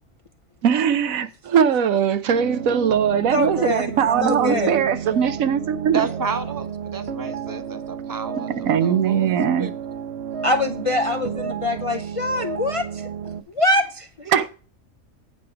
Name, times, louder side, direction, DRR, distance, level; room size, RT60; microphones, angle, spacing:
voice 1, 0.6-6.1 8.6-9.7 14.3-14.5, right 8 dB, 85° right, 1.2 m, -20 dB
sound 1, 2.3-13.4, right 7 dB, 55° right, 1.0 m, -32 dB
voice 2, 3.3-3.9 4.2-4.7 10.4-13.1 13.5-14.3, left 2 dB, 40° left, 0.4 m, -23 dB
voice 3, 4.1-4.9 5.9-9.7, right 5 dB, 20° right, 0.6 m, -30 dB
8.9 x 4.9 x 5.7 m
omnidirectional pair, 1.4 m